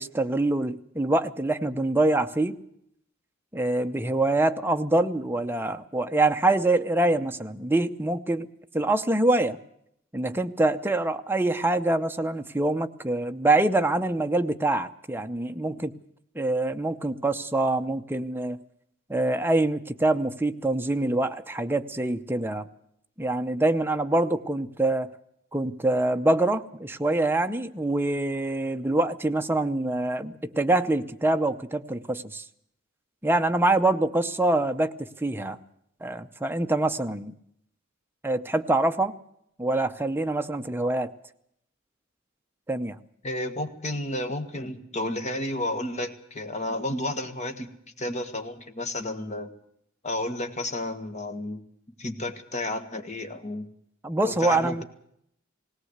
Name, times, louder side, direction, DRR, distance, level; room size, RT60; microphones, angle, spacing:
voice 1, 0.0-2.6 3.5-8.5 8.7-9.6 10.1-15.9 16.3-18.6 19.1-22.7 23.2-25.1 25.5-32.4 33.2-35.6 36.0-37.3 38.2-39.1 39.6-41.1 42.7-43.0 54.0-54.8, right 2 dB, 10° right, 7 dB, 0.7 m, -25 dB
voice 2, 43.2-47.7 48.0-49.5 50.0-51.6 52.0-53.7 54.3-54.8, left 1 dB, 35° left, 7 dB, 1.7 m, -31 dB
18.5 x 18.0 x 8.0 m, 0.73 s
head